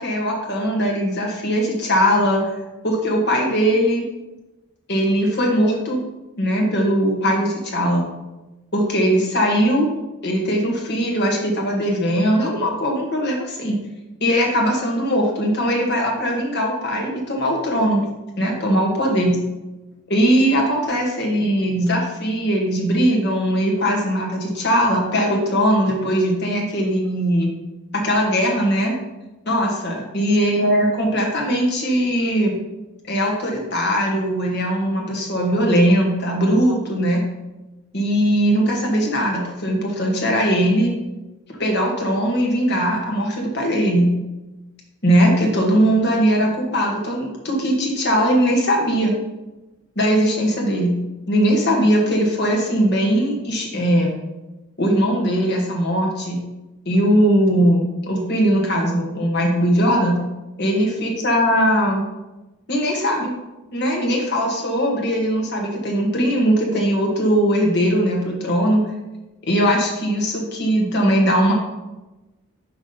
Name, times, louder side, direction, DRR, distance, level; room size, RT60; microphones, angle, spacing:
voice 1, 0.0-2.4 2.8-4.0 4.9-6.0 6.4-8.0 8.7-9.9 10.2-13.8 14.2-18.1 18.4-19.4 20.1-27.5 27.9-29.0 29.5-32.6 33.1-37.2 37.9-40.9 41.6-44.1 45.0-49.1 50.0-51.0 51.3-54.1 54.8-56.4 56.9-60.2 60.6-62.0 62.7-63.3 63.7-68.8 69.4-71.5, equal, 50° left, -1 dB, 1.7 m, -20 dB
6.1 x 4.8 x 5.6 m, 1.0 s
head